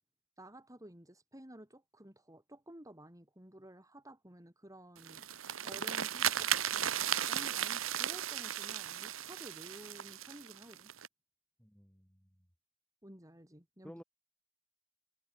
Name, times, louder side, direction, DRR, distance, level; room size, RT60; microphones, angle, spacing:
voice 1, 0.4-5.3 5.6-10.9 13.0-13.9, right 1 dB, 15° right, 7.5 m, -53 dB
sound 1, 5.0-11.1, right 10 dB, 80° right, 1.7 m, -35 dB
voice 2, 11.6-12.5 13.8-14.0, equal, 5° left, 4.4 m, -54 dB
head